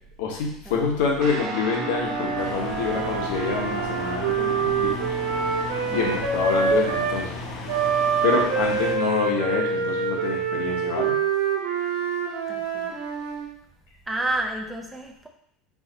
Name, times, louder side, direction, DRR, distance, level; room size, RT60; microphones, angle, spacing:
voice 1, 0.2-5.1 5.9-7.4 8.2-11.2, left 5 dB, 80° left, 0 dB, 1.1 m, -27 dB
Guitar, 1.2-11.0, right 2 dB, 45° right, 0.8 m, -36 dB
Wind instrument woodwind instrument, 1.7-7.2 7.7-13.5, right 5 dB, 85° right, 0.9 m, -26 dB
sound 1, 2.4-9.0, left 4 dB, 55° left, 0.8 m, -37 dB
voice 2, 5.9-6.3 8.2-8.6 12.5-13.0 14.1-15.3, right 1 dB, 5° right, 2 dB, 0.4 m, -31 dB
4.8 x 2.6 x 4.0 m, 0.69 s
cardioid pair, 180°, 0 cm